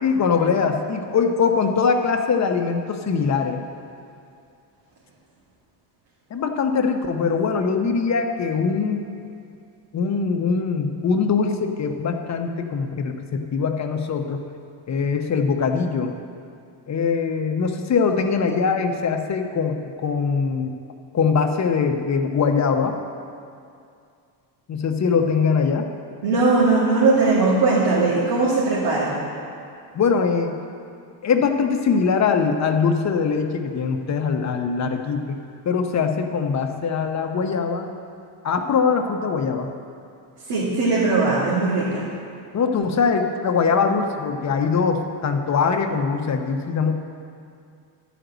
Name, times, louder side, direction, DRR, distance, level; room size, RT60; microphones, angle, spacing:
voice 1, 0.0-3.6 6.3-9.1 9.9-14.4 14.9-16.1 16.9-20.7 21.1-23.0 24.7-25.9 29.9-30.6 31.2-35.4 35.7-37.9 38.4-39.7 42.5-46.9, left 5 dB, 35° left, 4 dB, 0.8 m, -22 dB
voice 2, 26.2-29.1 40.5-42.0, right 3 dB, 85° right, -8 dB, 2.4 m, -19 dB
11.0 x 5.1 x 7.9 m, 2.4 s
cardioid pair, 125°, 48 cm